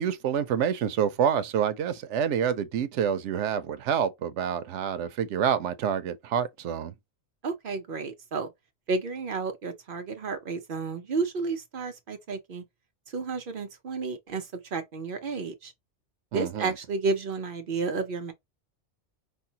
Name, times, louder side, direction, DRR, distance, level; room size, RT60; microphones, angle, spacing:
voice 1, 0.0-6.9 16.3-16.7, right 8 dB, 90° right, 0.9 m, -27 dB
voice 2, 7.4-8.5 8.9-12.6 13.1-15.7 16.3-18.3, right 4 dB, 55° right, 0.8 m, -31 dB
5.2 x 2.1 x 2.7 m
omnidirectional pair, 1.2 m